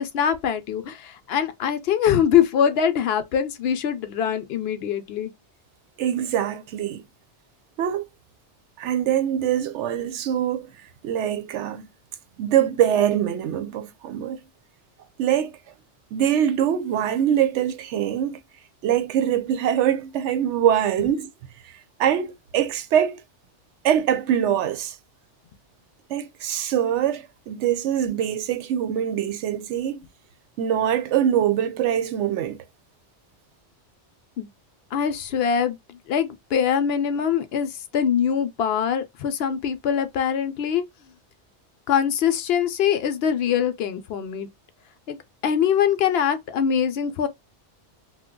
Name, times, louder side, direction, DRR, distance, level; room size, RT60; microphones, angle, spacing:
voice 1, 0.0-5.3 34.4-34.5 34.9-40.8 41.9-44.5 45.1-45.2 45.4-47.3, left 8 dB, 70° left, 0.7 m, -23 dB
voice 2, 6.0-7.0 7.8-8.0 8.8-10.7 11.0-11.9 12.4-14.4 15.2-15.5 16.1-18.4 18.8-21.3 22.0-23.2 23.8-24.9 26.1-30.0 30.6-32.6, right 10 dB, 85° right, 0.9 m, -23 dB
2.7 x 2.2 x 3.6 m
omnidirectional pair, 1.2 m